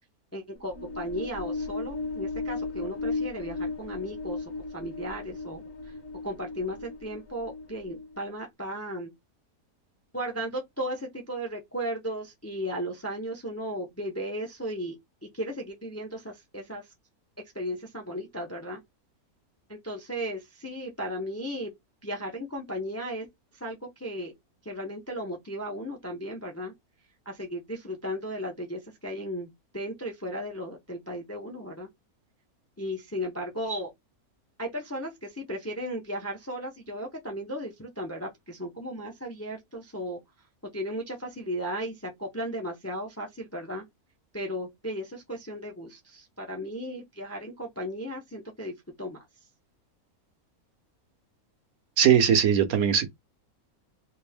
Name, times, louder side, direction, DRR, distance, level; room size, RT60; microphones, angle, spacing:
voice 1, 0.3-5.9 6.2-9.1 10.1-15.0 15.2-16.9 17.5-18.8 19.7-21.7 22.0-23.3 23.5-24.3 24.6-26.7 27.3-31.9 32.8-33.9 34.6-40.2 40.7-43.9 44.3-49.2, equal, 15° left, 0.5 m, -35 dB
sound 1, 0.6-8.2, left 3 dB, 45° left, 1.0 m, -36 dB
voice 2, 52.0-53.1, right 8 dB, 70° right, 1.3 m, -20 dB
3.4 x 2.6 x 3.4 m
omnidirectional pair, 1.6 m